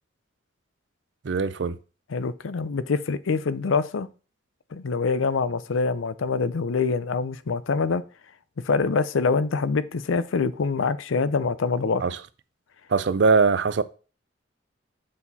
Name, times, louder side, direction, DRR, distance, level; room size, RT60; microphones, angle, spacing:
voice 1, 1.2-1.8 12.0-12.2 12.9-13.8, right 4 dB, 60° right, 0.5 m, -21 dB
voice 2, 2.1-4.1 4.7-8.0 8.6-12.0, left 4 dB, 85° left, 0.5 m, -25 dB
7.4 x 4.8 x 4.1 m
head